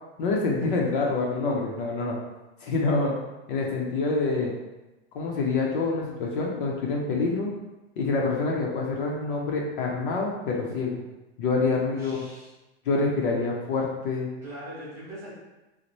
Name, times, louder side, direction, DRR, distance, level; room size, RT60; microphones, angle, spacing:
voice 1, 0.2-2.2 2.6-3.1 3.5-4.5 5.1-7.5 8.0-11.0 11.4-12.2 12.9-14.3, left 3 dB, 50° left, -2 dB, 0.6 m, -26 dB
voice 2, 11.8-12.5 14.4-15.3, right 1 dB, 10° right, -10 dB, 1.0 m, -41 dB
4.1 x 2.1 x 3.0 m, 1.0 s
supercardioid pair, 165°, 33 cm